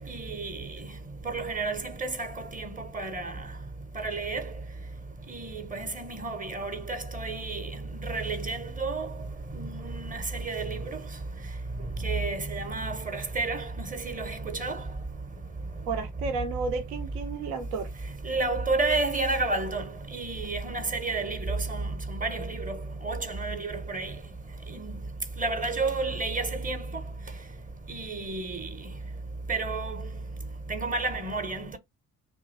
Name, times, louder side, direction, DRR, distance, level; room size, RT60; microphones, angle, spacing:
voice 1, 0.1-0.7 1.2-3.3 4.0-4.4 5.3-7.6 8.0-9.1 9.5-10.9 12.0-14.8 18.2-19.8 20.1-22.8 23.0-24.1 24.7-25.0 25.4-26.8 27.9-28.7 29.5-30.0 30.7-31.8, right 3 dB, 20° right, 0.7 m, -31 dB
voice 2, 15.9-17.9, right 4 dB, 75° right, 0.6 m, -32 dB
2.8 x 2.2 x 3.8 m
figure-of-eight pair, 40°, 44 cm